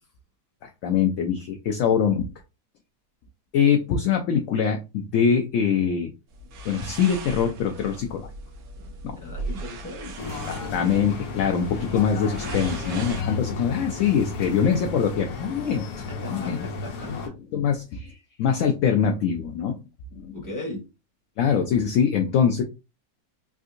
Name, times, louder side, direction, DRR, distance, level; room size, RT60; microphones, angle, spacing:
voice 1, 0.6-2.3 3.5-6.1 6.6-8.3 9.0-9.2 10.5-16.6 17.5-19.8 20.1-20.4 21.4-22.6, left 7 dB, 70° left, 3 dB, 0.8 m, -23 dB
sound 1, 6.3-13.2, right 2 dB, 75° right, 1.1 m, -38 dB
voice 2, 9.2-10.3 12.9-13.4 14.4-15.0 16.1-17.1 20.3-20.8, left 2 dB, 15° left, 0 dB, 0.7 m, -38 dB
sound 2, 10.2-17.3, left 4 dB, 90° left, 1.3 m, -34 dB
3.6 x 2.5 x 2.5 m, 0.28 s
omnidirectional pair, 1.7 m